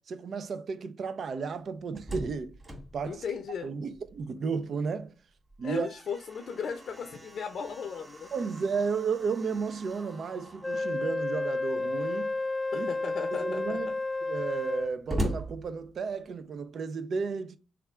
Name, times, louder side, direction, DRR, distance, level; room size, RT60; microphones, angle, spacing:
voice 1, 0.0-2.5 2.9-3.2 3.6-5.1 5.6-5.9 8.3-12.3 12.7-12.9 13.4-13.9 14.2-17.6, right 5 dB, 60° right, 0.5 m, -33 dB
Slam, 1.6-4.4 4.8-4.9 5.3-11.0 11.9-12.4 13.0-13.1 13.3-16.4, right 1 dB, 15° right, 1.9 m, -41 dB
voice 2, 3.0-3.7 5.6-8.3 12.7-13.8, left 6 dB, 65° left, 0.5 m, -36 dB
Wind instrument woodwind instrument, 10.6-15.0, left 2 dB, 15° left, 0.3 m, -31 dB
3.4 x 2.5 x 4.2 m
supercardioid pair, 50°, 0 cm